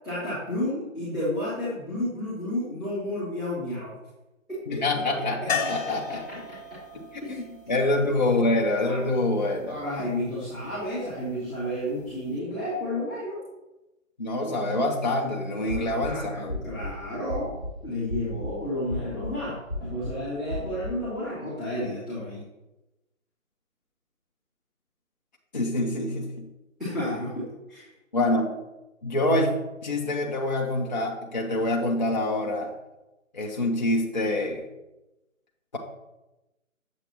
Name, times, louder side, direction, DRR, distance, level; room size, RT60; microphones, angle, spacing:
voice 1, 0.0-3.9 4.5-6.8 7.2-7.4 8.8-9.0 9.7-13.4 15.6-17.4 17.8-22.5 26.8-27.9, left 1 dB, ahead, -17 dB, 0.8 m, -32 dB
voice 2, 4.7-6.2 7.3-9.8 14.2-16.5 25.5-26.5 28.1-28.5 29.0-29.5 29.8-32.7 33.3-34.6, left 2 dB, 35° left, -1 dB, 0.6 m, -26 dB
sound 1, 5.5-9.4 12.0-12.1 12.4-12.5, left 5 dB, 50° left, 1.4 m, -35 dB
sound 2, 15.7-16.1 16.5-16.9 17.3-17.7 18.1-18.5 18.9-19.3 19.7-20.1 20.5-20.9, left 1 dB, 20° right, 1.3 m, -34 dB
8.5 x 7.0 x 3.0 m, 1.0 s
figure-of-eight pair, 145°, 41 cm